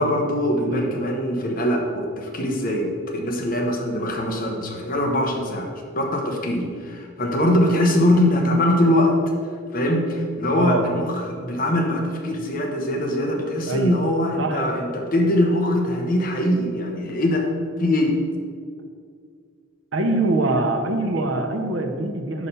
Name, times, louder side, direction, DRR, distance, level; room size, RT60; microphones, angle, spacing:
voice 1, 0.0-5.7 5.9-9.1 9.7-17.5 17.8-18.2, left 1 dB, 45° left, 2 dB, 0.9 m, -22 dB
voice 2, 0.6-0.9 10.5-10.8 13.7-13.9 14.4-14.7 19.9-22.5, right 2 dB, 85° right, 5 dB, 0.8 m, -24 dB
5.5 x 4.9 x 5.6 m, 2.2 s
head